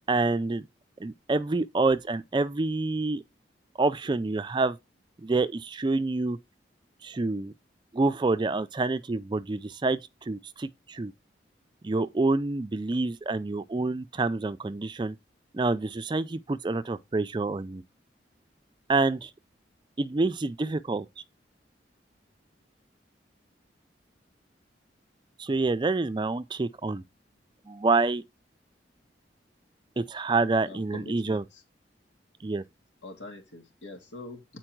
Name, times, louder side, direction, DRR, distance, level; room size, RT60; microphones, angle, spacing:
voice 1, 0.1-0.6 1.0-3.2 3.8-4.8 5.2-6.4 7.0-7.5 7.9-11.1 11.8-15.2 15.5-17.8 18.9-19.3 20.0-21.1 25.4-27.0 27.7-28.2 30.0-31.4 32.4-32.6, right 3 dB, 25° right, 0.4 m, -27 dB
voice 2, 30.6-31.6 33.0-34.4, left 2 dB, 90° left, 2.2 m, -43 dB
8.9 x 4.5 x 4.5 m
head